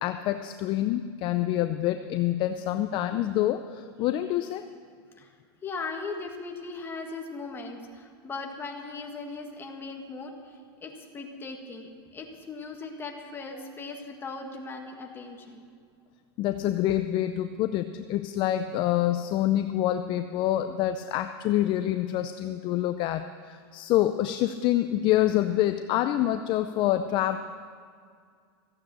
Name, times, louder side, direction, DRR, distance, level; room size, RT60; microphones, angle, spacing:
voice 1, 0.0-4.7 16.4-27.4, left 13 dB, 40° left, 9 dB, 0.5 m, -26 dB
voice 2, 5.6-15.7, left 3 dB, 15° left, 2 dB, 1.7 m, -38 dB
14.5 x 9.0 x 7.5 m, 2.1 s
supercardioid pair, 140°, 13 cm